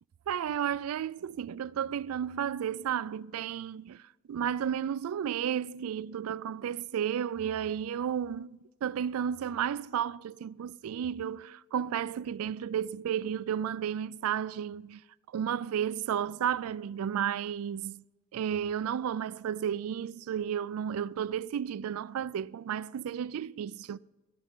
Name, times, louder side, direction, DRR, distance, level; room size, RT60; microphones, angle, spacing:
voice 1, 0.3-4.0 4.3-8.5 8.8-15.0 15.3-18.0 18.3-24.0, right 9 dB, 80° right, 0.3 m, -32 dB
12.5 x 12.0 x 3.7 m
head